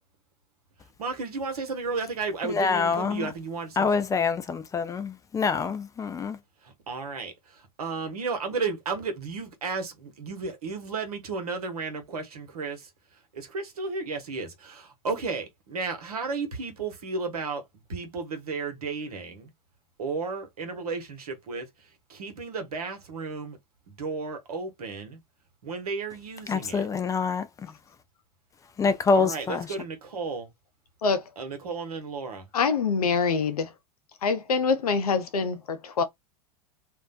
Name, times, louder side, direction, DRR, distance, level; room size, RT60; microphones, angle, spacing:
voice 1, 1.0-3.9 6.9-12.9 13.3-17.6 17.9-19.5 20.0-21.7 22.1-23.6 23.9-25.2 25.6-26.8 29.1-30.5 31.4-32.5, right 4 dB, 75° right, 1.0 m, -33 dB
voice 2, 2.4-3.3 3.8-6.4 26.5-27.5 28.8-29.7, left 5 dB, 15° left, 0.5 m, -26 dB
voice 3, 32.5-33.7 34.2-36.0, left 5 dB, 75° left, 0.7 m, -25 dB
2.6 x 2.1 x 2.4 m
hypercardioid pair, 95°, 20 cm